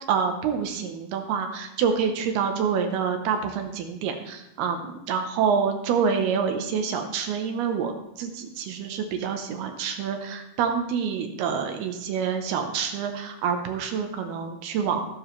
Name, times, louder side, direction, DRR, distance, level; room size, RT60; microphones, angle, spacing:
voice 1, 0.1-15.1, right 6 dB, 75° right, 5 dB, 2.9 m, -27 dB
19.0 x 7.1 x 3.2 m, 0.86 s
omnidirectional pair, 4.7 m